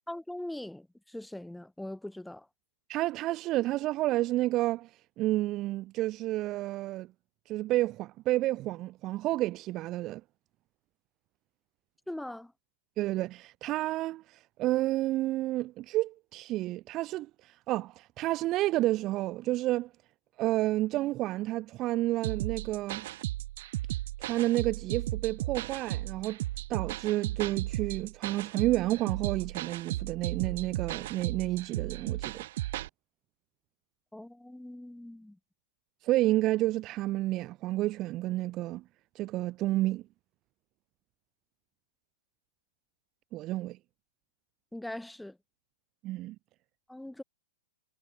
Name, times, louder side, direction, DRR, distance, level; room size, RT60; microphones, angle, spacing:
voice 1, 0.1-2.5 12.1-12.5 34.1-35.4 44.7-45.4 46.9-47.2, left 1 dB, 5° left, 3.9 m, -41 dB
voice 2, 2.9-4.9 5.2-7.1 7.5-10.2 13.0-19.9 20.4-23.1 24.2-26.4 26.7-32.4 36.0-38.8 39.1-40.0 43.3-43.8 46.0-46.3, right 16 dB, 35° right, 1.1 m, -30 dB
sound 1, 22.2-32.9, right 16 dB, 55° right, 2.5 m, -35 dB
hypercardioid pair, 125°, 0 cm